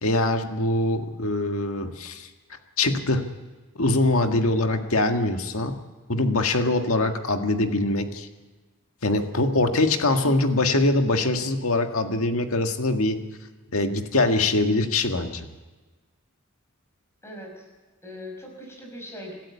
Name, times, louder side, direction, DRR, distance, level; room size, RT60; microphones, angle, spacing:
voice 1, 0.0-2.3 2.8-3.3 3.8-5.8 6.1-8.3 9.0-13.2 13.7-15.5, left 2 dB, 75° left, 6 dB, 1.8 m, -23 dB
voice 2, 17.2-17.7 18.0-19.3, equal, 10° left, 1 dB, 5.7 m, -39 dB
26.0 x 13.0 x 8.3 m, 1.3 s
head